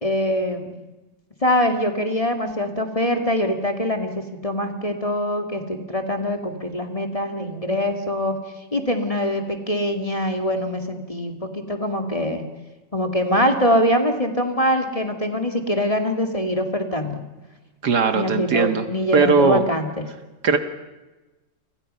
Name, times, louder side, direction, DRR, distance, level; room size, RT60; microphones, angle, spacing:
voice 1, 0.0-0.7 1.4-8.4 8.7-12.5 12.9-17.2 18.1-20.1, equal, 20° left, 5 dB, 2.3 m, -23 dB
voice 2, 17.8-18.8 19.1-19.6 20.4-20.6, right 4 dB, 65° right, 8 dB, 1.9 m, -18 dB
30.0 x 24.0 x 5.6 m, 1.1 s
omnidirectional pair, 1.9 m